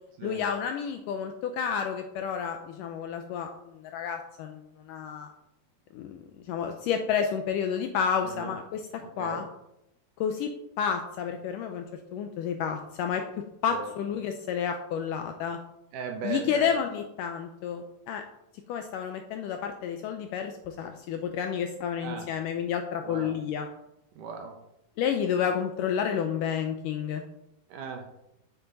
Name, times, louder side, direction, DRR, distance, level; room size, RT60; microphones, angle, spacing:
voice 1, 0.2-5.3 5.9-8.8 9.2-9.4 10.2-10.5 10.8-11.9 12.1-13.2 13.6-15.6 16.2-18.2 18.7-23.7 25.0-27.2, left 7 dB, 80° left, 5 dB, 2.0 m, -30 dB
voice 2, 8.2-8.6 9.0-9.4 13.7-13.9 15.9-16.7 22.0-22.3 23.0-23.4 24.2-24.5 27.7-28.1, right 5 dB, 70° right, 3 dB, 2.3 m, -37 dB
8.6 x 7.9 x 4.0 m, 0.83 s
omnidirectional pair, 4.3 m